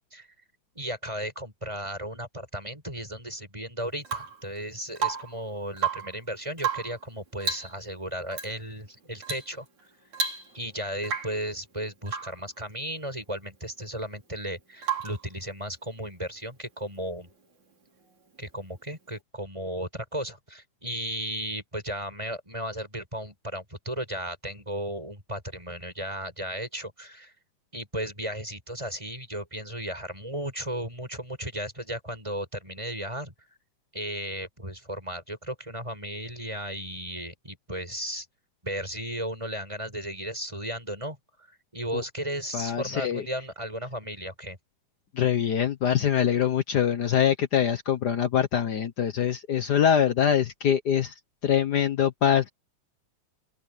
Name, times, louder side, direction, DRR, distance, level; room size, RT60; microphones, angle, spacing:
voice 1, 0.7-9.7 10.5-17.3 18.4-27.3 27.7-33.3 33.9-38.3 38.6-41.5 41.7-44.6, equal, 10° right, 8.0 m, -35 dB
Rain / Water tap faucet / Drip, 4.0-4.4 5.0-5.4 5.7-6.2 6.6-7.0 7.4-7.8 8.3-8.5 9.2-9.5 9.8-9.9 10.1-10.7 11.0-11.4 12.1-12.4 14.8-15.3 17.2-17.3, right 6 dB, 70° right, 7.2 m, -31 dB
voice 2, 42.5-43.3 45.1-51.1 51.4-52.5, left 8 dB, 70° left, 0.9 m, -24 dB
open air
omnidirectional pair, 3.4 m